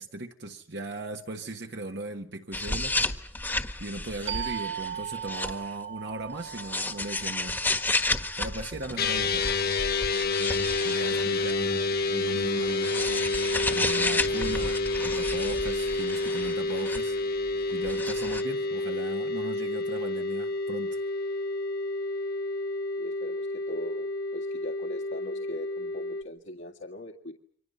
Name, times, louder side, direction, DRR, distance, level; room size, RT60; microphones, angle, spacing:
voice 1, 0.0-3.0 3.8-7.6 8.3-9.5 10.8-13.0 13.7-17.2 17.7-21.0, right 2 dB, 55° right, 1.4 m, -38 dB
sound 1, 2.5-5.7 6.4-11.6 12.3-17.2 17.5-18.4, left 2 dB, 10° left, 1.5 m, -32 dB
sound 2, 4.3-9.6, right 10 dB, 75° right, 2.1 m, -39 dB
sound 3, 9.0-26.2, left 3 dB, 50° left, 1.2 m, -29 dB
voice 2, 23.0-27.3, left 1 dB, 70° left, 2.0 m, -41 dB
29.5 x 25.0 x 5.6 m
head